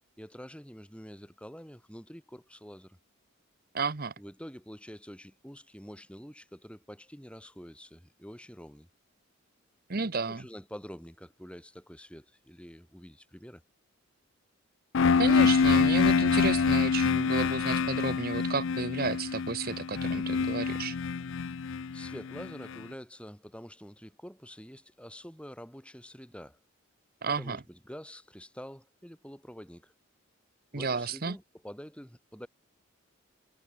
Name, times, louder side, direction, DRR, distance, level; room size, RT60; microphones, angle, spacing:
voice 1, 0.2-3.0 4.2-8.9 10.3-13.6 21.9-26.6 27.4-29.9 30.7-32.5, equal, 5° left, 6.4 m, -47 dB
voice 2, 3.7-4.1 9.9-10.5 15.2-21.0 27.2-27.6 30.7-31.4, right 4 dB, 45° right, 0.9 m, -32 dB
sound 1, 14.9-22.8, left 5 dB, 65° left, 0.5 m, -26 dB
head